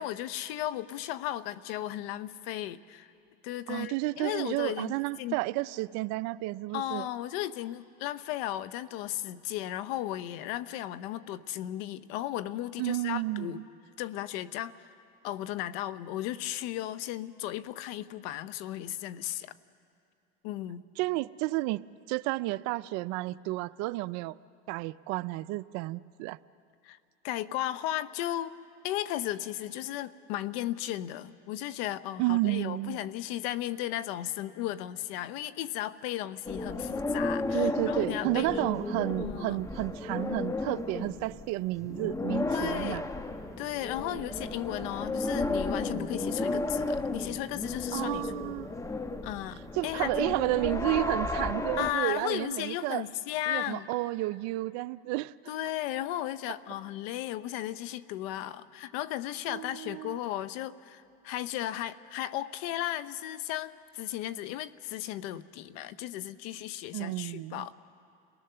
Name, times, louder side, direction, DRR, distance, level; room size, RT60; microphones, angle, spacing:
voice 1, 0.0-3.1 3.4-5.4 6.7-13.7 14.0-14.9 15.2-19.5 20.4-20.9 26.8-27.0 27.2-28.5 28.8-38.7 39.2-39.6 42.5-43.0 43.6-48.3 49.2-50.3 51.8-53.9 55.5-67.7, left 13 dB, 70° left, 15 dB, 0.9 m, -35 dB
voice 2, 3.7-7.1 12.8-13.6 21.0-24.4 24.7-26.4 32.2-33.0 37.5-43.0 44.1-44.3 44.7-44.9 47.9-48.7 49.7-53.1 53.5-55.3 59.5-60.2 66.9-67.7, right 19 dB, 60° right, 18 dB, 0.5 m, -31 dB
sound 1, 36.5-51.9, left 2 dB, 10° left, 1.0 m, -33 dB
29.5 x 18.5 x 6.8 m, 2.4 s
supercardioid pair, 110°, 31 cm